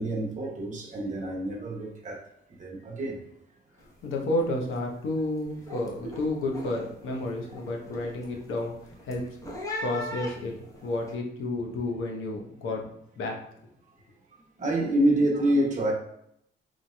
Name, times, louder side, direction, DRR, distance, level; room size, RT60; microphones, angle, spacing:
voice 1, 0.0-2.2 2.6-3.2 6.0-6.1 14.6-15.9, right 1 dB, 40° right, 0.9 m, -27 dB
sound 1, 3.8-4.1 4.3-4.8 5.2-11.1, left 1 dB, 15° left, 0.9 m, -40 dB
voice 2, 4.0-8.8 9.0-9.2 9.8-10.5 10.8-13.4, left 2 dB, 80° left, 0.8 m, -31 dB
3.7 x 3.2 x 2.2 m
cardioid pair, 90°, 20 cm